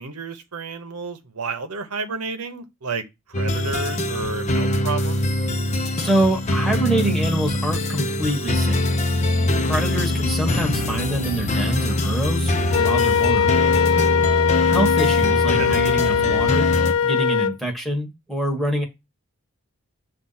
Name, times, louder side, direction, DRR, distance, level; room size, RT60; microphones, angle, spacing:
voice 1, 0.0-5.2 15.5-15.7, right 4 dB, 85° right, 0.9 m, -31 dB
sound 1, 3.3-16.9, left 1 dB, 30° left, 0.7 m, -23 dB
voice 2, 6.0-8.9 9.6-13.5 14.7-16.7 17.0-18.9, right 1 dB, ahead, 1.2 m, -25 dB
Wind instrument woodwind instrument, 12.7-17.6, left 7 dB, 65° left, 0.3 m, -20 dB
7.5 x 2.5 x 5.5 m
head